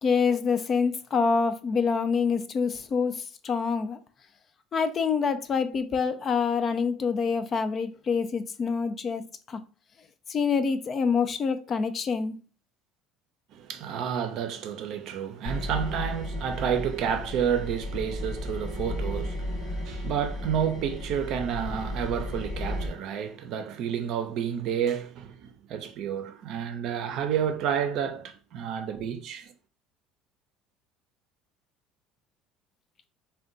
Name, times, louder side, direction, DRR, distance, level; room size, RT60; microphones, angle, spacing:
voice 1, 0.0-4.0 4.7-9.6 10.3-12.4, left 5 dB, 35° left, 0.3 m, -26 dB
voice 2, 13.5-29.5, right 8 dB, 60° right, 0.5 m, -30 dB
sound 1, 15.4-22.9, left 1 dB, 55° left, 1.0 m, -34 dB
2.5 x 2.2 x 3.8 m
cardioid pair, 115°, 0 cm